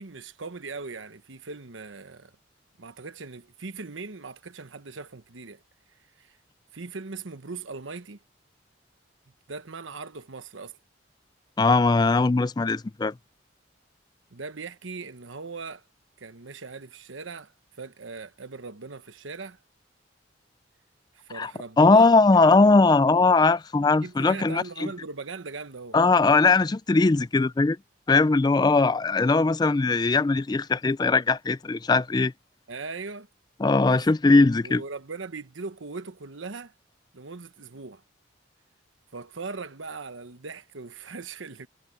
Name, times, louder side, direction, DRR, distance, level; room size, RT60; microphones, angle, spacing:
voice 1, 0.0-2.3 2.8-5.6 6.2-6.4 6.7-8.2 9.5-10.8 14.3-15.8 16.2-17.5 17.8-19.6 21.1-22.1 24.0-26.0 32.7-33.3 33.8-34.0 34.6-36.7 37.1-38.0 39.1-41.7, right 4 dB, 90° right, 1.1 m, -39 dB
voice 2, 11.6-13.1 21.3-21.5 21.8-24.9 25.9-27.8 28.1-32.3 33.6-34.8, left 3 dB, 20° left, 0.3 m, -20 dB
head